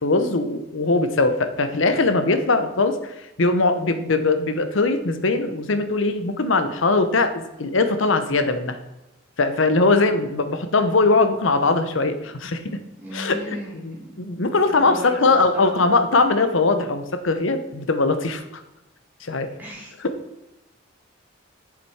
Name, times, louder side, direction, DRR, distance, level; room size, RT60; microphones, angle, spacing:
voice 1, 0.0-3.1 3.4-8.8 9.4-12.8 13.1-13.6 13.8-18.6 19.2-19.5, left 3 dB, 75° left, 9 dB, 0.9 m, -21 dB
voice 2, 13.0-14.1 14.5-16.1 19.6-19.9, equal, 10° right, -4 dB, 2.5 m, -36 dB
7.5 x 7.3 x 4.8 m, 0.94 s
head